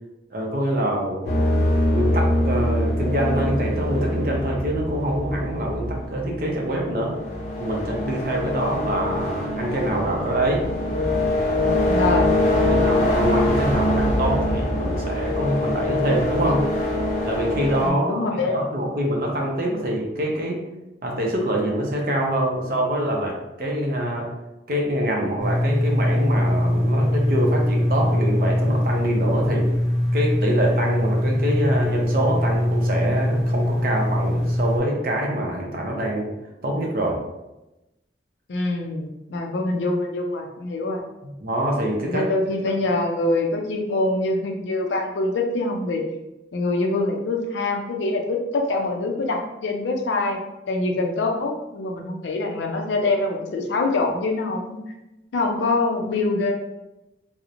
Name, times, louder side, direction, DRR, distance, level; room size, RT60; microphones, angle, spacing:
voice 1, 0.3-1.4 1.9-7.1 7.6-10.7 12.7-16.6 17.3-18.2 18.5-20.6 21.0-24.3 24.7-29.7 30.1-36.3 36.6-37.2 41.4-42.2, right 1 dB, 55° right, 0 dB, 0.5 m, -25 dB
sound 1, 1.2-17.9, left 1 dB, 40° left, 0.6 m, -23 dB
voice 2, 11.8-12.3 17.8-18.6 38.5-41.0 42.0-46.1 46.5-50.4 50.7-54.8 55.3-56.5, left 2 dB, 85° left, 2 dB, 0.4 m, -24 dB
sound 2, 25.4-34.8, left 1 dB, 5° right, 0.9 m, -22 dB
2.8 x 2.0 x 2.4 m, 0.97 s
head